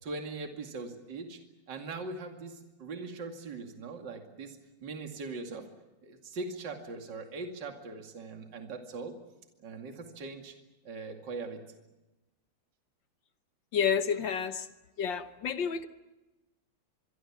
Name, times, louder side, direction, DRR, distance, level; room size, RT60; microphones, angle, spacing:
voice 1, 0.0-1.4 1.7-5.7 6.0-9.1 9.6-10.5 10.8-11.6, right 3 dB, 55° right, 3 dB, 2.9 m, -41 dB
voice 2, 13.7-14.7 15.0-15.9, left 7 dB, 60° left, 10 dB, 1.7 m, -30 dB
25.5 x 23.5 x 7.3 m, 1.0 s
omnidirectional pair, 2.4 m